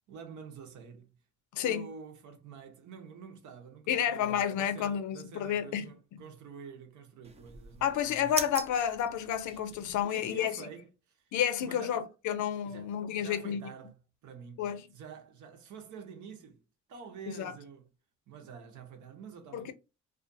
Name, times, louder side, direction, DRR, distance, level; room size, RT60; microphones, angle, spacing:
voice 1, 0.1-1.2 1.6-8.5 9.7-11.3 11.6-12.1 12.6-14.0 14.2-16.6 16.9-17.9 18.3-19.7, right 6 dB, 75° right, 0.9 m, -48 dB
voice 2, 1.5-1.9 3.9-5.9 7.8-10.7 11.3-13.6 14.6-14.8 17.4-17.5 19.5-19.7, left 9 dB, 75° left, 0.6 m, -30 dB
sound 1, 7.2-10.0, right 4 dB, 20° right, 0.4 m, -41 dB
2.4 x 2.4 x 2.5 m
cardioid pair, 90°, 30 cm